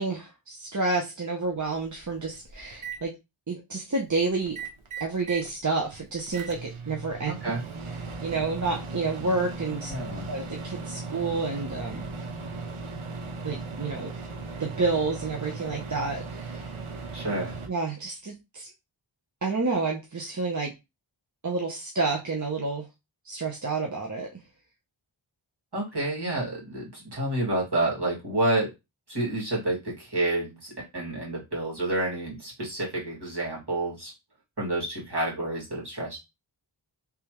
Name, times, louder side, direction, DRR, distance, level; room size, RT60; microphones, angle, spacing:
voice 1, 0.0-3.1 3.5-4.5 5.0-7.3 8.2-9.9 10.3-12.0 13.4-14.1 14.6-16.6 17.7-18.7 19.4-20.7 21.4-22.8 23.2-24.3, right 3 dB, 35° right, 0 dB, 0.8 m, -29 dB
Microwave oven, 1.5-1.6 2.0-3.0 4.4-5.5 5.9-17.7, right 3 dB, 80° right, 0.8 m, -37 dB
voice 2, 7.2-7.6 9.9-10.3 17.1-17.6 25.7-28.7 29.1-34.1 34.6-36.2, right 1 dB, 55° right, -4 dB, 2.4 m, -29 dB
3.4 x 3.3 x 3.1 m, 0.23 s
wide cardioid pair, 40°, 49 cm